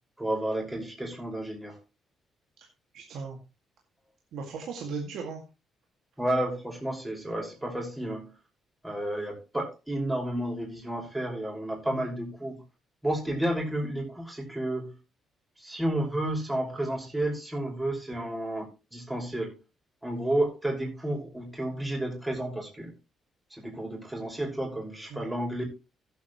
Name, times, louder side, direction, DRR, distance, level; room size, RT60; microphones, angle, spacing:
voice 1, 0.2-1.8 6.2-8.3 8.8-12.6 13.0-14.9 15.6-18.6 18.9-19.6 20.0-22.9 23.5-25.6, right 1 dB, 10° right, 0 dB, 5.5 m, -31 dB
voice 2, 2.9-3.4 4.3-5.4 11.9-12.0 18.1-18.3 25.1-25.2, right 4 dB, 75° right, 2 dB, 2.1 m, -37 dB
15.5 x 8.1 x 3.1 m, 0.28 s
cardioid pair, 90°, 0 cm